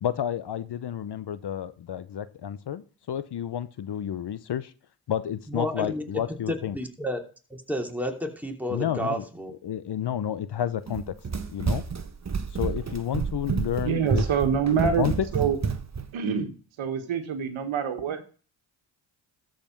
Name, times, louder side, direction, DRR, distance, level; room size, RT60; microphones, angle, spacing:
voice 1, 0.0-4.7 5.1-6.8 8.7-9.2 9.6-11.1 11.5-11.8 12.5-14.2 14.5-15.3, left 10 dB, 55° left, 15 dB, 0.9 m, -30 dB
voice 2, 5.5-6.0 6.5-7.2 7.5-9.5, equal, 5° right, 2 dB, 2.8 m, -31 dB
Run, 10.9-16.1, right 5 dB, 35° right, 1.2 m, -29 dB
voice 3, 13.8-15.1 15.3-15.6 16.1-16.5 16.8-18.2, right 7 dB, 70° right, 7 dB, 1.6 m, -26 dB
13.0 x 5.3 x 5.3 m, 0.38 s
supercardioid pair, 50°, 49 cm